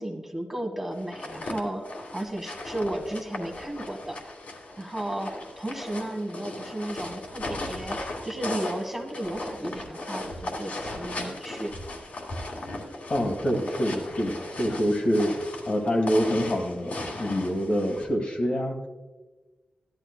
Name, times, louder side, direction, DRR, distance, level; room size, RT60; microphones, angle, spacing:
voice 1, 0.0-1.9 2.1-4.2 4.8-8.0 8.2-11.7, right 1 dB, 10° right, 3 dB, 1.3 m, -34 dB
sound 1, 1.0-18.0, left 2 dB, 60° left, 2.2 m, -37 dB
voice 2, 13.1-15.3 15.7-18.8, equal, 45° left, 2 dB, 1.6 m, -26 dB
15.5 x 12.0 x 2.2 m, 1.2 s
wide cardioid pair, 160°, 3 cm